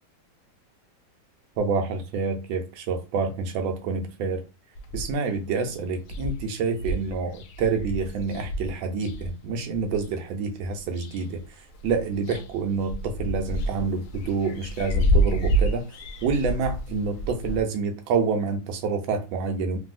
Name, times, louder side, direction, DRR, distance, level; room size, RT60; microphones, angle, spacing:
voice 1, 1.6-4.4 4.9-11.4 11.8-15.9 16.2-19.8, right 4 dB, 75° right, 1.3 m, -27 dB
sound 1, 4.8-5.4 5.7-5.8 6.0-10.1 10.6-11.5 11.7-17.6, right 1 dB, 80° left, 0.9 m, -28 dB
3.1 x 2.6 x 2.4 m
omnidirectional pair, 2.2 m